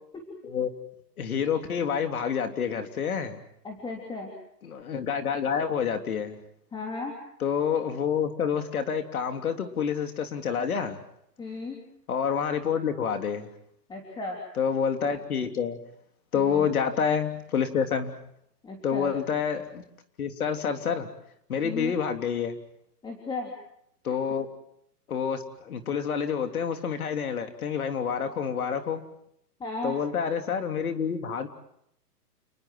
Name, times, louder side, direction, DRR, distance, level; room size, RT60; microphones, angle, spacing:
voice 1, 1.2-3.4 4.6-6.4 7.4-11.0 12.1-13.5 14.5-15.8 16.3-18.1 18.8-19.8 20.2-21.1 21.5-22.6 24.0-24.5 25.1-29.0 29.8-31.5, left 7 dB, 60° left, 6 dB, 3.4 m, -28 dB
voice 2, 3.6-4.3 6.7-7.1 11.4-11.8 13.9-14.4 16.3-16.7 18.6-19.1 21.6-21.9 23.0-23.5 29.6-29.9, left 3 dB, 10° left, 0 dB, 3.3 m, -35 dB
29.5 x 20.0 x 7.7 m, 0.73 s
hypercardioid pair, 140°, 48 cm